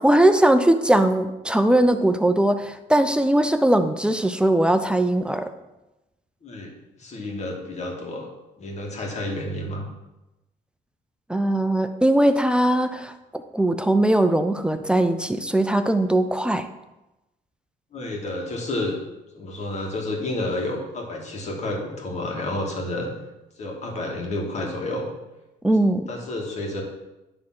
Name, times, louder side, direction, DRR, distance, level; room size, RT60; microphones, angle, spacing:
voice 1, 0.0-5.5 11.3-16.7 25.6-26.1, right 1 dB, 5° right, 8 dB, 0.5 m, -20 dB
voice 2, 7.0-8.3 8.6-9.9 17.9-19.0 19.3-23.1 23.6-25.1 26.1-26.8, left 1 dB, 40° left, 0 dB, 2.1 m, -30 dB
9.9 x 3.7 x 5.9 m, 0.99 s
cardioid pair, 110°, 17 cm